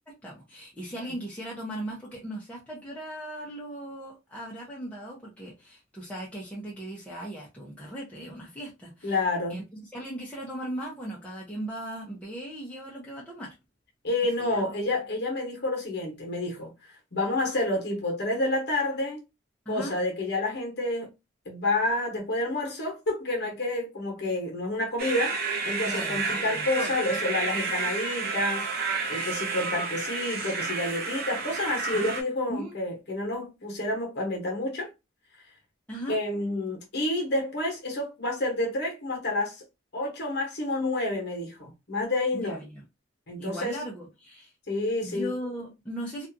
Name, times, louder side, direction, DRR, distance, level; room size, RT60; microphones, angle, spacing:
voice 1, 0.1-9.2 9.5-13.6 14.4-14.6 19.7-20.0 25.9-26.9 31.9-32.1 32.5-32.7 35.9-36.2 42.3-42.8 43.4-44.5 45.0-46.3, right 1 dB, 10° left, 0.6 m, -38 dB
voice 2, 9.0-9.6 14.0-16.7 17.1-19.2 19.7-21.1 21.5-28.7 29.1-34.9 36.1-39.6 39.9-42.6 43.3-43.8 44.7-45.3, left 2 dB, 60° left, 0.9 m, -29 dB
sound 1, 25.0-32.2, right 4 dB, 55° right, 0.6 m, -31 dB
2.5 x 2.3 x 2.6 m
head